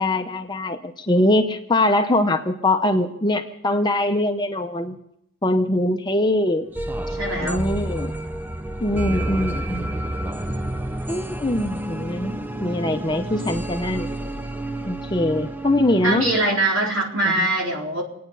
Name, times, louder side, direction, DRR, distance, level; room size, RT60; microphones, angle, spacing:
voice 1, 0.0-5.0 5.4-6.7 7.4-8.1 8.8-10.0 11.1-12.3 12.6-14.1 14.9-16.3 17.2-17.5, left 1 dB, 20° left, 5 dB, 0.8 m, -22 dB
sound 1, 6.7-16.4, right 1 dB, 10° right, 0.5 m, -29 dB
voice 2, 7.2-7.6 16.0-18.0, right 2 dB, 60° right, -1 dB, 4.1 m, -22 dB
27.0 x 9.5 x 5.5 m, 0.79 s
head